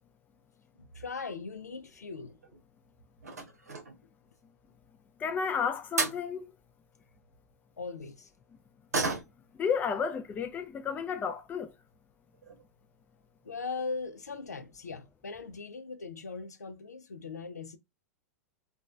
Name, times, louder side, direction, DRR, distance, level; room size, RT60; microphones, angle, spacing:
voice 1, 0.8-2.4 7.8-8.3 13.4-17.8, left 4 dB, 80° left, 0.4 m, -39 dB
sound 1, 2.2-2.7 3.2-4.1 5.6-5.7 6.0-6.2 8.9-9.6 9.9-10.0 10.5-10.6 11.4-11.5 11.8-11.9 12.3-12.6 12.9-13.0 13.3-13.4, right 3 dB, 75° right, 0.8 m, -34 dB
voice 2, 5.2-6.5 9.5-11.7, left 6 dB, 20° left, 0.4 m, -32 dB
2.9 x 2.3 x 2.3 m
figure-of-eight pair, 95°, 9 cm